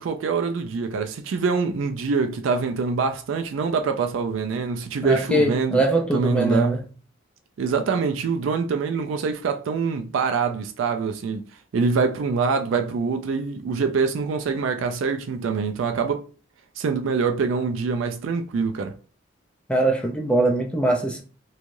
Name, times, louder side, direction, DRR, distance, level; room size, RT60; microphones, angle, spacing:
voice 1, 0.0-5.8 6.1-6.8 7.6-11.4 11.7-16.2 16.8-18.9, right 5 dB, 90° right, 0.4 m, -25 dB
voice 2, 5.0-6.8 19.7-21.2, right 1 dB, 5° left, 0.4 m, -22 dB
3.1 x 2.3 x 2.6 m
head